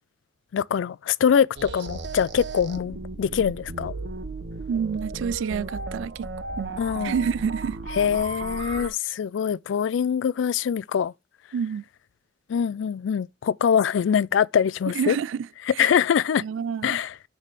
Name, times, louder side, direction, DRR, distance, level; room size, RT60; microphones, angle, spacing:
voice 1, 0.5-3.9 6.8-7.1 8.0-11.1 12.5-15.2 15.8-16.4 16.8-17.1, left 7 dB, 80° left, 0.3 m, -23 dB
sound 1, 1.6-8.9, right 3 dB, 65° right, 1.0 m, -35 dB
voice 2, 4.7-6.3 6.6-7.8 11.5-11.8 14.9-15.5 15.7-15.9 16.4-17.0, right 7 dB, 85° right, 0.3 m, -28 dB
6.6 x 3.5 x 6.0 m
head